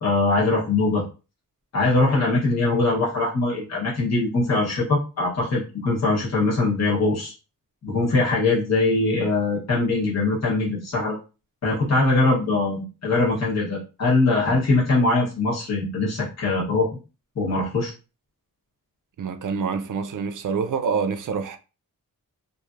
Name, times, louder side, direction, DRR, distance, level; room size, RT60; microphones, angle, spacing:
voice 1, 0.0-1.0 1.7-7.3 7.8-11.2 11.6-16.9 17.4-17.9, left 2 dB, 50° left, 1.1 m, -22 dB
voice 2, 19.2-21.6, right 5 dB, 65° right, 0.5 m, -26 dB
3.1 x 2.6 x 2.4 m
wide cardioid pair, 120°, 35 cm